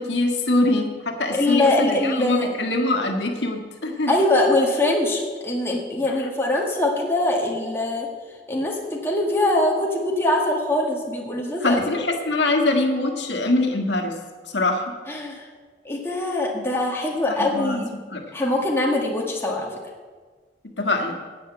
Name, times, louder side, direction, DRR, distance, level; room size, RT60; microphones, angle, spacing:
voice 1, 0.0-4.1 6.1-6.3 11.6-14.2 14.5-14.9 17.3-18.2 20.8-21.2, left 2 dB, 80° left, 2 dB, 1.6 m, -23 dB
voice 2, 1.3-2.5 4.1-8.1 8.5-11.8 15.1-15.5 15.9-17.9 18.3-19.7, left 1 dB, 15° left, -2 dB, 1.7 m, -22 dB
10.0 x 8.4 x 7.8 m, 1.5 s
head